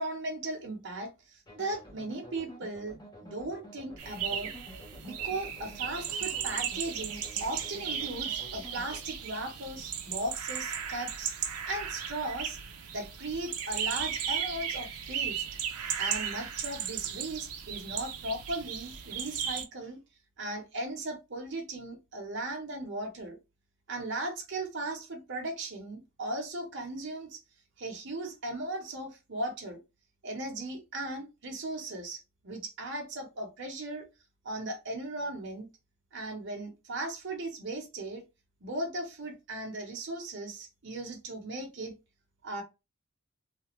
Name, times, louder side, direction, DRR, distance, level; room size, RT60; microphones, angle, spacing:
voice 1, 0.0-4.5 5.0-12.6 12.9-15.3 16.0-20.0 20.4-23.4 23.9-27.4 27.8-29.8 30.2-34.0 34.4-35.7 36.1-38.2 38.6-41.9 42.4-42.6, right 2 dB, 55° right, 0.8 m, -37 dB
sound 1, 1.5-9.0, equal, 20° left, 0.8 m, -50 dB
sound 2, 4.0-19.6, right 8 dB, 90° right, 0.5 m, -36 dB
2.4 x 2.3 x 3.0 m
head